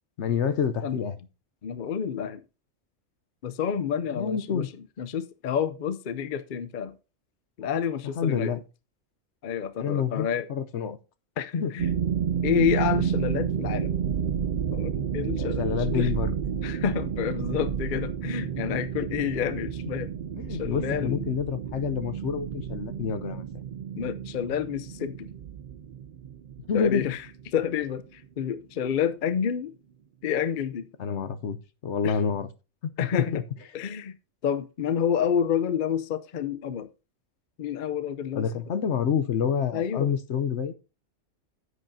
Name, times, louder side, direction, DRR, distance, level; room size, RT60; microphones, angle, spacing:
voice 1, 0.2-1.2 4.1-4.7 8.2-8.6 9.8-11.0 11.6-11.7 15.4-16.3 20.4-23.4 26.7-27.1 31.0-31.6 31.8-32.5 33.3-33.4 38.3-40.7, left 7 dB, 70° left, 1.0 m, -28 dB
voice 2, 1.6-2.4 3.4-4.7 5.0-6.9 7.6-8.5 9.4-10.5 11.4-11.9 12.4-13.9 14.7-15.6 15.9-16.1 16.6-20.1 20.5-21.2 24.0-25.3 26.7-27.2 27.5-29.7 30.2-30.9 32.0-32.1 33.0-33.4 33.7-34.1 34.4-36.9 37.6-38.5 39.7-40.2, left 8 dB, 50° left, 0.7 m, -29 dB
sound 1, 11.8-27.7, right 8 dB, 55° right, 0.5 m, -30 dB
10.5 x 8.2 x 2.7 m
omnidirectional pair, 1.3 m